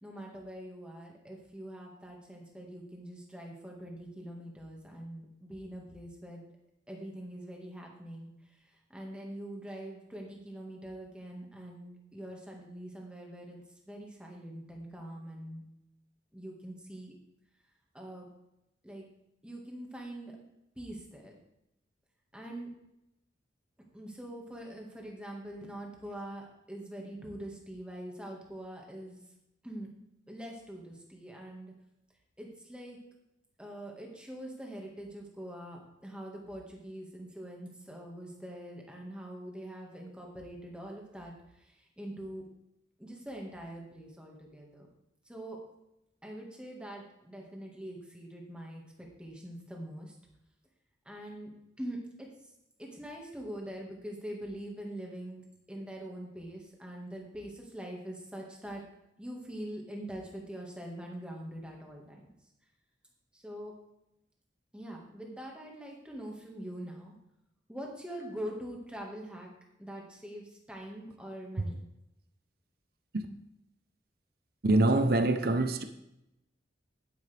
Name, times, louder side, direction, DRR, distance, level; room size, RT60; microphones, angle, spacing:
voice 1, 0.0-6.4 6.9-8.3 8.9-13.6 13.9-15.6 16.3-17.1 17.9-18.3 18.8-19.0 19.4-20.4 20.8-21.3 22.3-22.7 23.9-29.2 29.6-29.9 30.3-31.7 32.4-33.0 33.6-41.3 42.0-42.5 43.0-44.9 45.3-45.6 46.2-50.1 51.1-51.5 51.8-52.3 52.8-55.4 55.7-58.8 59.2-62.3 63.3-63.7 64.7-67.1 67.7-69.5 69.8-71.8, right 1 dB, 5° right, -1 dB, 1.9 m, -43 dB
voice 2, 74.6-75.8, right 2 dB, 55° right, 8 dB, 0.8 m, -25 dB
10.5 x 10.0 x 3.5 m, 0.86 s
head